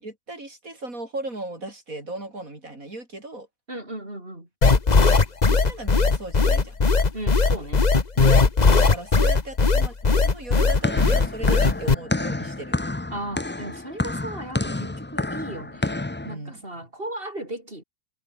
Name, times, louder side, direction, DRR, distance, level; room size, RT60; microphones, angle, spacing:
voice 1, 0.0-3.5 5.5-6.7 8.2-8.4 8.8-12.8 16.2-16.6, right 2 dB, 75° right, 6.5 m, -36 dB
voice 2, 3.7-4.5 7.1-7.9 13.1-16.0 16.2-17.8, right 1 dB, 40° right, 6.9 m, -36 dB
sound 1, 4.6-11.9, left 4 dB, 30° left, 1.4 m, -18 dB
sound 2, 10.5-16.4, left 2 dB, 15° left, 0.4 m, -29 dB
omnidirectional pair, 1.5 m